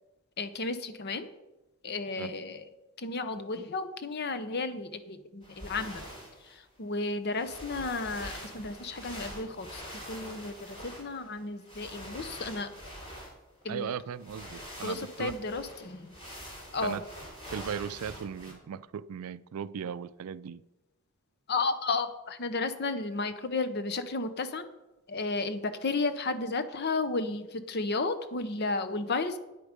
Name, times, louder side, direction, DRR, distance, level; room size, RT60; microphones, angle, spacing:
voice 1, 0.4-1.3 1.8-2.7 3.0-6.0 6.5-12.7 13.6-13.9 14.8-16.1 16.7-17.0 21.5-24.7 25.1-29.4, left 3 dB, 50° left, 11 dB, 0.8 m, -33 dB
sound 1, 5.4-6.6 7.3-13.7 14.1-18.5, equal, 25° left, 3.4 m, -45 dB
voice 2, 13.7-15.3 16.8-17.1 17.5-20.6, right 7 dB, 90° right, 18 dB, 0.4 m, -37 dB
9.4 x 8.3 x 5.2 m, 1.0 s
head